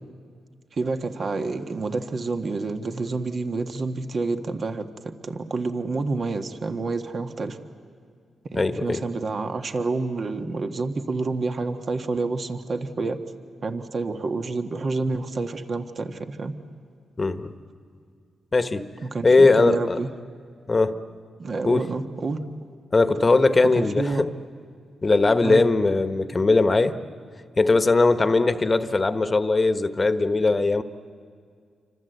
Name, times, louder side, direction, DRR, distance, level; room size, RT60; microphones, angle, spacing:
voice 1, 0.7-7.6 8.5-13.2 13.6-16.5 19.0-20.1 21.4-22.5 23.7-24.3 25.4-25.6, right 3 dB, 50° right, 6 dB, 1.5 m, -28 dB
voice 2, 8.5-9.0 17.2-17.5 18.5-18.9 19.2-20.0 20.7-21.0 21.6-21.8 22.9-24.3 25.0-27.0 27.6-30.8, left 3 dB, 30° left, 10 dB, 1.2 m, -20 dB
28.0 x 25.0 x 8.0 m, 2.2 s
cardioid pair, 75°, 0 cm